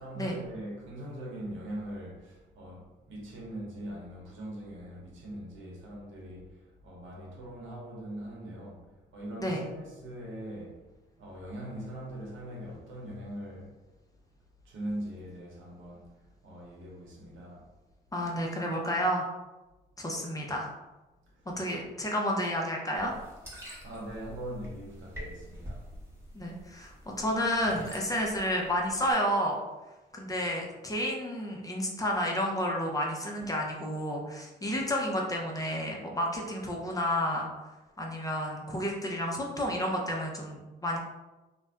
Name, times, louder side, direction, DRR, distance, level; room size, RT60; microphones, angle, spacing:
voice 1, 0.0-13.8 14.6-17.7 21.3-21.8 23.8-25.9 33.4-33.5, right 1 dB, 80° right, 0.9 m, -42 dB
voice 2, 18.1-19.3 20.0-20.7 21.6-23.1 26.3-29.6 30.1-37.5 38.0-41.0, equal, 15° left, 0.6 m, -31 dB
sound 1, 22.9-29.1, equal, 15° right, 1.1 m, -46 dB
2.5 x 2.1 x 3.4 m
cardioid pair, 90°, 20 cm